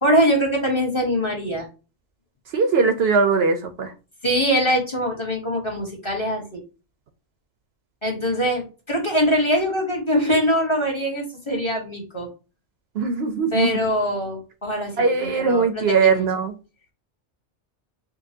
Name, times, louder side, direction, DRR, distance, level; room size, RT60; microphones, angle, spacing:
voice 1, 0.0-1.7 4.2-6.6 8.0-12.3 13.5-16.2, equal, 25° left, -1 dB, 1.2 m, -23 dB
voice 2, 2.5-3.9 12.9-13.7 15.0-16.5, right 4 dB, 65° right, 8 dB, 0.8 m, -20 dB
5.3 x 2.2 x 2.6 m, 0.32 s
omnidirectional pair, 1.2 m